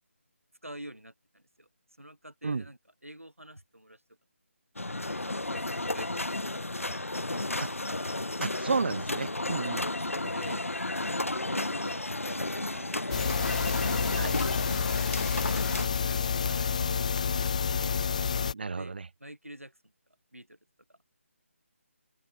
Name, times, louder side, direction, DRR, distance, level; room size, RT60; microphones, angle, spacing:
voice 1, 0.6-1.7 2.0-4.0 5.2-7.0 7.3-7.8 9.9-13.2 13.6-15.2 15.7-17.1 17.3-17.8 18.8-19.9 20.3-20.6 20.9-21.0, right 1 dB, 85° right, 1.7 m, -48 dB
sound 1, 4.8-15.9, left 2 dB, 80° left, 0.6 m, -33 dB
voice 2, 8.4-9.9 14.2-14.4 18.5-19.0, right 4 dB, 50° right, 0.9 m, -32 dB
sound 2, 13.1-18.5, left 6 dB, 30° left, 0.6 m, -29 dB
figure-of-eight pair, 150°, 7 cm